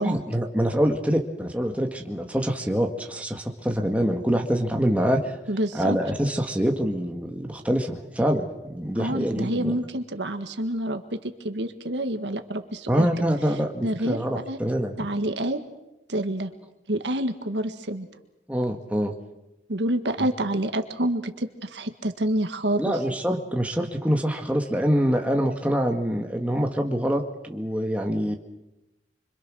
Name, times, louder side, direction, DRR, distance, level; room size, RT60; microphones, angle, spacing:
voice 1, 0.0-5.2 5.7-9.8 12.9-14.9 18.5-19.1 22.8-28.4, equal, 10° right, 2 dB, 1.8 m, -25 dB
voice 2, 5.5-6.0 9.0-13.3 13.8-14.6 15.0-15.6 16.1-16.5 16.9-18.1 19.7-23.0, right 1 dB, 80° right, 7 dB, 1.8 m, -28 dB
26.0 x 25.0 x 6.4 m, 0.97 s
head